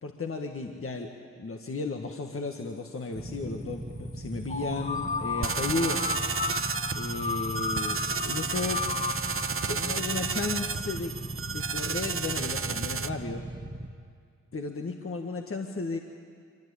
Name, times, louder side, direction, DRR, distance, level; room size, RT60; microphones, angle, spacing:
voice 1, 0.0-1.1 1.4-6.0 6.9-8.0 8.2-8.8 9.7-11.1 11.4-13.4 14.5-16.0, left 3 dB, 40° left, 3 dB, 1.7 m, -34 dB
Motorcycle / Idling, 3.2-13.9, right 1 dB, 15° right, 1.8 m, -39 dB
sound 1, 4.5-11.3, left 5 dB, 25° left, 0.8 m, -34 dB
sound 2, 5.4-13.1, right 5 dB, 40° right, 1.0 m, -32 dB
24.0 x 18.0 x 8.6 m, 2.2 s
supercardioid pair, 40°, 32 cm